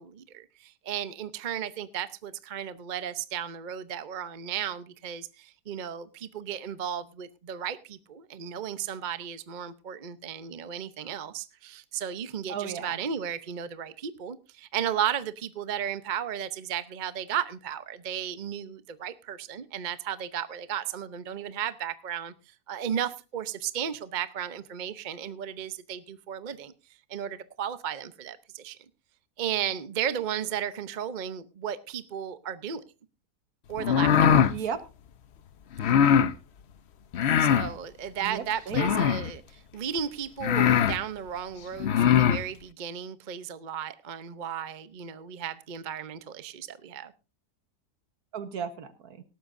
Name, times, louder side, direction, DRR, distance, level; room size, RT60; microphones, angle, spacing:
voice 1, 0.0-22.3 22.7-26.7 27.1-28.8 29.4-32.8 33.7-34.5 35.8-35.9 37.4-39.4 39.7-47.1, right 9 dB, 40° right, 13 dB, 0.7 m, -34 dB
voice 2, 12.5-13.0 34.5-34.8 38.2-39.1 48.3-49.2, right 7 dB, 65° right, 12 dB, 1.7 m, -35 dB
sound 1, 33.8-34.5 35.8-36.3 37.1-37.7 38.7-39.3 40.0-40.1 40.4-41.0 41.8-42.4, left 8 dB, 55° left, 0.8 m, -21 dB
18.0 x 13.0 x 2.6 m, 0.29 s
omnidirectional pair, 1.8 m